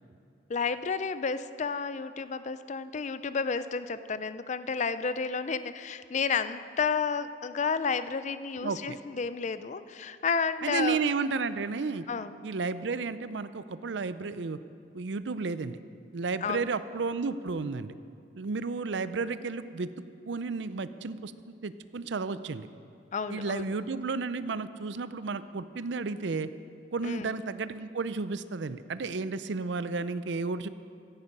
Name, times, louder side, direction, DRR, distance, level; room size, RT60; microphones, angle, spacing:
voice 1, 0.5-11.0 12.1-12.4 16.4-16.7 23.1-23.8 27.0-27.3, left 5 dB, 40° left, 13 dB, 0.4 m, -31 dB
voice 2, 8.6-9.0 10.6-12.0 12.4-14.6 14.9-15.8 16.1-17.9 18.4-19.9 20.3-21.3 21.6-22.7 23.3-26.5 26.9-30.7, right 4 dB, 65° right, 14 dB, 0.5 m, -32 dB
16.0 x 11.0 x 5.4 m, 2.4 s
head